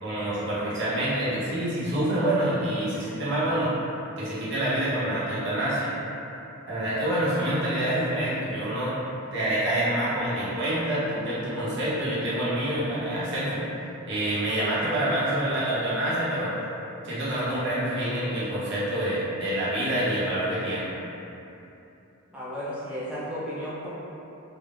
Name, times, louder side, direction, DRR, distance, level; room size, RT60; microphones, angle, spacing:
voice 1, 0.0-3.7 4.2-5.9 6.7-9.0 9.3-13.6 14.1-16.6 17.0-20.9, right 1 dB, 55° right, -10 dB, 0.7 m, -27 dB
voice 2, 22.3-23.9, equal, 5° right, -10 dB, 0.4 m, -34 dB
3.4 x 2.0 x 2.4 m, 2.9 s
head